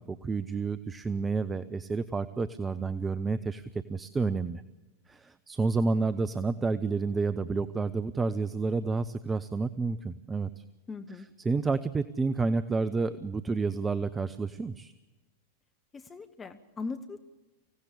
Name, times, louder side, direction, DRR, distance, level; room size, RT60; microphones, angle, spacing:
voice 1, 0.0-4.6 5.1-10.6 11.4-14.9, right 4 dB, 15° right, 12 dB, 0.8 m, -30 dB
voice 2, 10.9-11.3 15.9-17.2, left 4 dB, 15° left, 8 dB, 1.2 m, -39 dB
25.0 x 17.0 x 8.5 m, 1.1 s
figure-of-eight pair, 90°, 0 cm